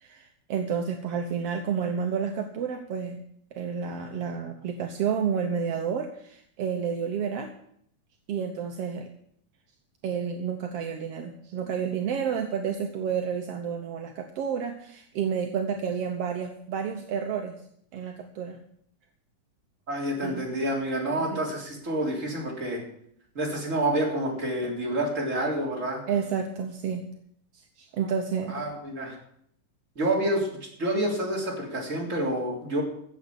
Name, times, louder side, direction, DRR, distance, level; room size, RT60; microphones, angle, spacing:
voice 1, 0.0-3.2 3.5-7.5 8.3-9.1 10.0-17.6 17.9-18.6 20.2-20.5 21.2-21.4 26.1-27.1 27.8-28.6, right 7 dB, 70° right, 4 dB, 1.5 m, -30 dB
voice 2, 19.9-22.8 23.4-26.0 28.5-29.2 30.0-30.5 30.8-32.8, right 1 dB, 25° right, -2 dB, 3.4 m, -28 dB
14.0 x 7.9 x 7.0 m, 0.69 s
omnidirectional pair, 3.8 m